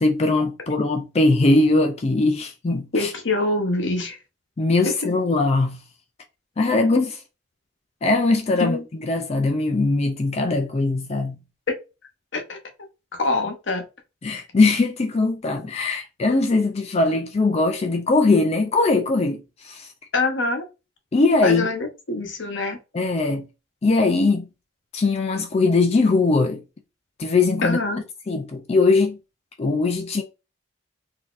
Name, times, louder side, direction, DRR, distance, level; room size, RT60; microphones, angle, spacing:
voice 1, 0.0-3.1 4.6-5.8 6.6-7.2 8.0-8.8 9.1-11.4 14.2-19.4 19.6-19.9 21.1-21.7 22.9-23.4 23.8-24.5 24.9-26.6 27.2-27.8 28.3-29.2 29.6-30.2, left 3 dB, 30° left, 0.3 m, -20 dB
voice 2, 2.9-4.2 8.6-8.8 12.3-12.6 13.1-13.9 20.1-20.7 21.4-22.8 27.6-28.0, left 2 dB, 60° left, 0.8 m, -24 dB
3.9 x 2.7 x 2.4 m
head